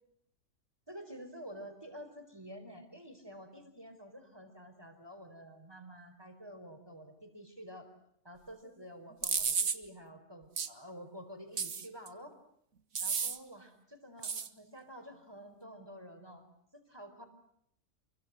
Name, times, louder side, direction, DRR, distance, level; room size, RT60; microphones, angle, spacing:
voice 1, 0.9-7.9 8.2-12.4 13.0-16.5 16.7-17.2, equal, 15° right, 7 dB, 4.9 m, -50 dB
sound 1, 9.2-9.8 10.6-10.7 11.6-12.1 13.0-13.4 14.2-14.5, right 6 dB, 70° right, 2.0 m, -32 dB
29.5 x 24.0 x 7.8 m, 0.73 s
omnidirectional pair, 1.5 m